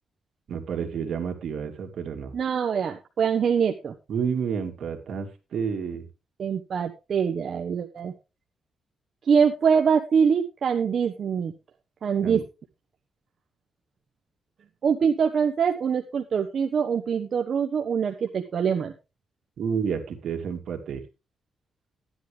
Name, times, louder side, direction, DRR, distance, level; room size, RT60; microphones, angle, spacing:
voice 1, 0.5-2.3 4.1-6.1 12.2-12.4 19.6-21.0, right 6 dB, 70° right, 4 dB, 2.4 m, -30 dB
voice 2, 2.3-3.9 6.4-8.1 9.3-11.5 12.0-12.4 14.8-18.9, right 6 dB, 55° right, 4 dB, 1.0 m, -24 dB
13.5 x 10.5 x 3.4 m, 0.28 s
cardioid pair, 130°, 0 cm